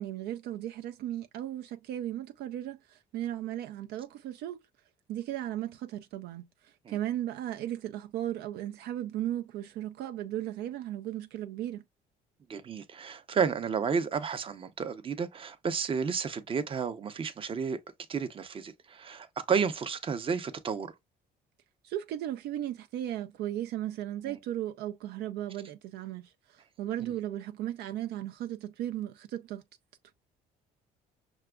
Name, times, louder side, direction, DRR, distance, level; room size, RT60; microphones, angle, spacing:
voice 1, 0.0-4.6 5.1-11.8 21.8-29.6, right 12 dB, 75° right, 0.4 m, -36 dB
voice 2, 12.5-17.8 18.1-20.9 24.3-24.4 27.0-27.1, right 6 dB, 30° right, 0.6 m, -32 dB
5.9 x 2.3 x 2.2 m
cardioid pair, 110°, 17 cm